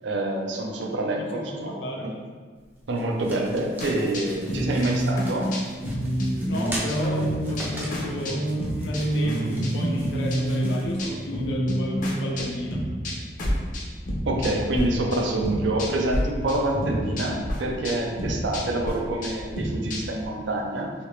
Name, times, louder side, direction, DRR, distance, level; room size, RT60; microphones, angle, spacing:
voice 1, 0.0-2.1 2.9-5.6 14.3-20.9, right 1 dB, 85° right, 1 dB, 0.5 m, -27 dB
voice 2, 1.2-2.1 6.4-8.5 8.7-12.8, equal, 85° left, -1 dB, 0.5 m, -33 dB
sound 1, 2.6-11.6, right 1 dB, 10° right, 0.4 m, -41 dB
sound 2, 3.8-14.8 15.1-16.2 16.5-20.3, equal, 45° left, 0.6 m, -28 dB
3.3 x 2.8 x 3.2 m, 1.5 s
head